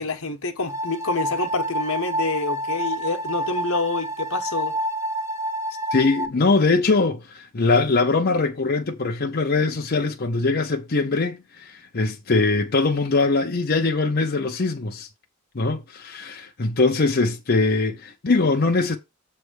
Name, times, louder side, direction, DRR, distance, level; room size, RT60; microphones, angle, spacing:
voice 1, 0.0-4.8, left 3 dB, 75° left, 1.2 m, -27 dB
sound 1, 0.7-6.3, right 1 dB, 15° right, 1.2 m, -28 dB
voice 2, 5.9-15.1 15.5-19.0, left 3 dB, 50° left, 0.8 m, -22 dB
7.5 x 3.4 x 6.3 m
head